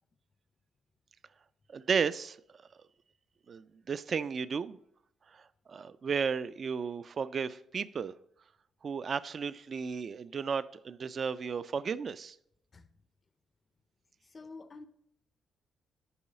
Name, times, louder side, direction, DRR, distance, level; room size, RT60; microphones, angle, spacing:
voice 1, 1.7-2.4 3.5-4.8 5.3-5.4 5.7-8.1 8.8-12.4, right 6 dB, 45° right, 0.3 m, -34 dB
voice 2, 14.2-14.9, left 3 dB, 35° left, 0.5 m, -48 dB
7.0 x 4.7 x 6.5 m
cardioid pair, 90°, 0 cm